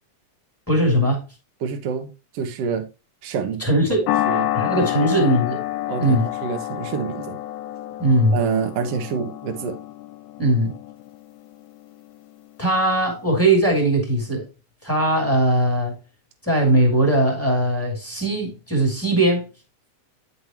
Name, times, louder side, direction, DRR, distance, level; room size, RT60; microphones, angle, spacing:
voice 1, 0.7-1.2 3.6-4.0 4.5-5.6 6.0-6.3 8.0-8.4 10.4-10.7 12.6-14.4 14.8-16.0 16.4-19.5, right 1 dB, 5° left, 2.2 m, -19 dB
voice 2, 1.6-2.1 2.3-2.9 3.2-3.6 4.2-4.5 4.8-5.1 5.9-7.4 8.3-9.8, right 6 dB, 60° right, 1.9 m, -27 dB
sound 1, 4.1-12.6, left 14 dB, 80° left, 2.1 m, -29 dB
9.6 x 5.4 x 2.9 m
omnidirectional pair, 3.7 m